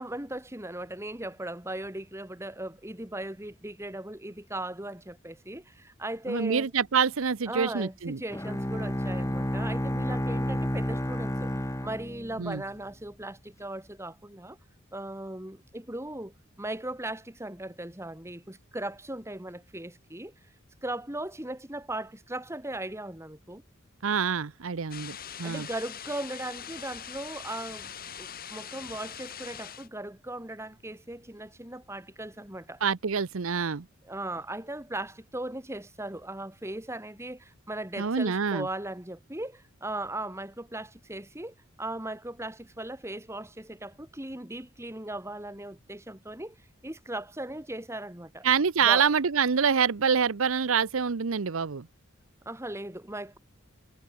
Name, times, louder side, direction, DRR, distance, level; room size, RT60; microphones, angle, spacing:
voice 1, 0.0-6.7 7.5-11.5 11.8-14.6 14.9-20.3 20.8-23.6 25.4-27.9 28.2-32.8 34.0-46.6 46.8-48.5 48.8-49.1 52.5-53.4, right 1 dB, 15° right, 2.2 m, -38 dB
voice 2, 6.3-8.2 12.4-12.6 24.0-25.7 32.8-33.9 38.0-38.7 48.4-51.9, right 6 dB, 75° right, 0.7 m, -26 dB
Bowed string instrument, 8.3-12.7, equal, 15° left, 2.4 m, -31 dB
sound 1, 24.9-29.9, left 8 dB, 45° left, 3.3 m, -42 dB
head